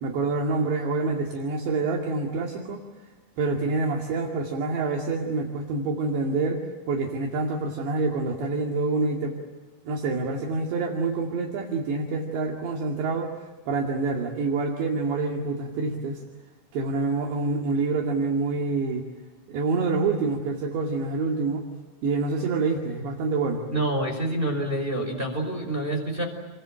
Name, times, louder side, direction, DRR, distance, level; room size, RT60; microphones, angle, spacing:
voice 1, 0.0-2.8 3.4-9.4 9.9-16.2 16.7-19.1 19.5-21.7 22.0-23.6, right 3 dB, 65° right, 0 dB, 4.3 m, -27 dB
voice 2, 23.7-26.2, right 1 dB, 10° right, 3 dB, 4.8 m, -27 dB
29.5 x 24.5 x 7.7 m, 1.3 s
omnidirectional pair, 5.8 m